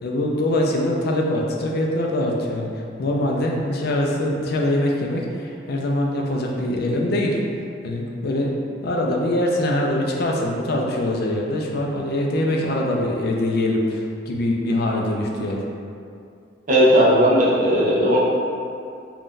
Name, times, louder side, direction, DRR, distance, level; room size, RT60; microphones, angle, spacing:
voice 1, 0.0-7.4 7.8-8.5 8.8-15.6, left 1 dB, 50° left, -1 dB, 0.4 m, -23 dB
voice 2, 16.7-18.2, equal, 40° right, -7 dB, 0.5 m, -16 dB
2.6 x 2.3 x 3.6 m, 2.5 s
head